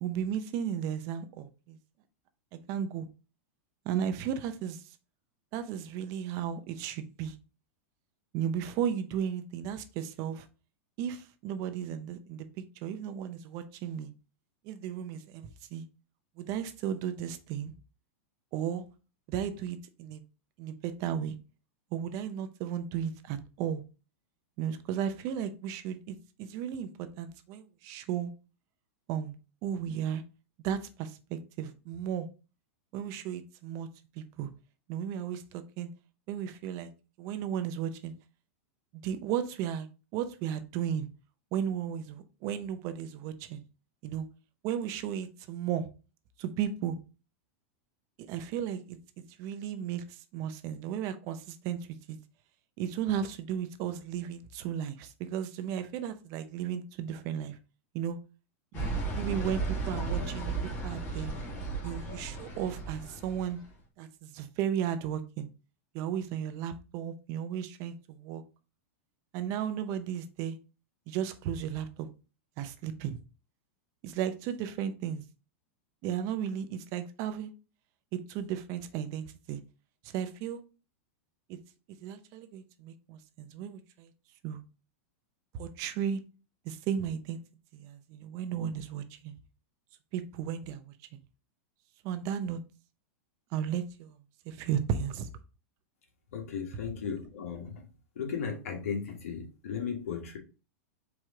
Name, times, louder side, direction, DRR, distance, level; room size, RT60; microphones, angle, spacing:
voice 1, 0.0-1.8 2.7-3.1 3.9-4.8 5.5-7.3 8.3-10.5 11.0-14.1 14.6-15.8 16.4-17.7 18.5-18.8 19.3-20.2 20.6-21.3 21.9-23.8 24.6-28.3 29.1-30.2 30.6-32.3 32.9-33.9 34.2-34.5 34.9-35.9 36.3-36.9 37.2-38.1 39.0-39.9 40.1-41.1 41.5-43.6 44.0-44.3 44.6-45.9 46.4-47.0 48.3-49.0 49.4-51.8 52.1-52.2 52.8-57.6 57.9-58.2 58.7-58.9 59.1-60.5 60.8-61.3 61.8-63.6 64.0-65.5 65.9-68.4 69.3-70.6 71.1-72.1 72.6-73.2 74.0-75.2 76.0-77.5 78.1-79.6 80.0-80.6 81.5-81.6 82.0-84.1 84.4-84.6 85.5-86.2 86.6-87.4 87.7-89.4 90.1-90.9 92.0-92.6 93.5-94.2 94.5-95.3, right 9 dB, 45° right, 10 dB, 0.6 m, -34 dB
sound 1, 58.7-63.5, right 3 dB, 30° left, 1.6 m, -34 dB
voice 2, 96.3-97.8 98.1-100.4, left 6 dB, 85° left, 2 dB, 1.6 m, -36 dB
4.7 x 3.1 x 3.7 m, 0.33 s
supercardioid pair, 140°, 8 cm